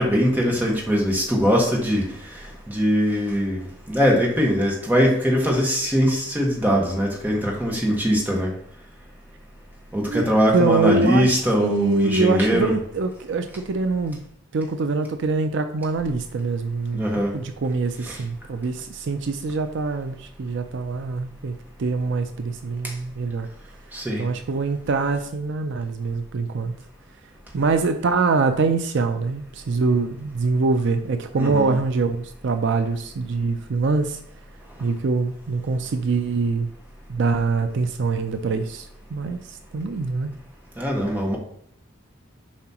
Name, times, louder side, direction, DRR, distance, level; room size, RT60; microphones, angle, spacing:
voice 1, 0.0-2.0 2.7-3.6 3.9-8.5 9.9-12.8 16.9-17.3 18.1-18.2 23.9-24.2 31.3-31.8 40.8-41.4, equal, 10° right, -2 dB, 1.4 m, -21 dB
voice 2, 10.5-14.2 14.5-17.1 17.3-23.5 24.2-26.7 27.5-34.2 34.8-36.7 37.1-40.3, right 4 dB, 65° right, 8 dB, 0.5 m, -24 dB
7.3 x 4.8 x 3.0 m, 0.67 s
head